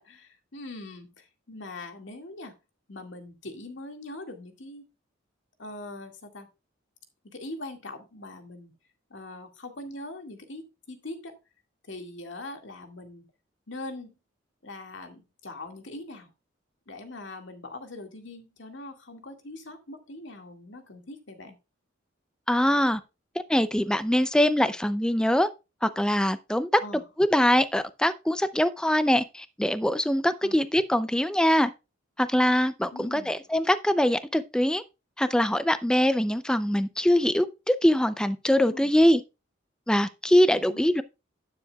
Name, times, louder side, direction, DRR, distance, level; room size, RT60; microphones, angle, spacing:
voice 1, 0.0-2.5 2.9-4.9 5.6-6.5 7.3-8.7 9.1-11.3 11.9-13.3 13.7-14.1 14.6-16.3 16.9-21.6 24.6-24.7 26.8-27.0 30.4-30.6 32.9-33.4 38.7-38.9 40.6-40.9, left 2 dB, 75° left, 2.0 m, -42 dB
voice 2, 22.5-23.0 23.5-25.5 25.8-26.7 27.2-31.7 32.2-34.8 35.2-39.2 39.9-41.0, equal, 5° left, 0.4 m, -23 dB
12.0 x 9.8 x 2.3 m
head